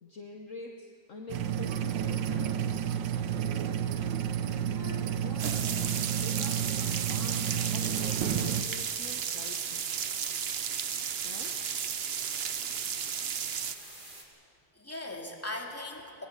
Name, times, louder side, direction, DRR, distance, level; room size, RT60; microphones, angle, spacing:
voice 1, 0.0-2.7 4.5-9.9 11.2-11.7, left 3 dB, 45° left, 2 dB, 1.5 m, -47 dB
sound 1, 1.3-8.6, right 9 dB, 80° right, 1.6 m, -31 dB
sound 2, 5.4-13.7, right 8 dB, 55° right, 0.7 m, -34 dB
sound 3, 7.3-14.2, right 2 dB, 25° right, 2.8 m, -47 dB
voice 2, 13.5-14.0 14.7-16.3, left 1 dB, 5° left, 0 dB, 2.5 m, -40 dB
22.5 x 20.5 x 8.2 m, 2.6 s
omnidirectional pair, 2.0 m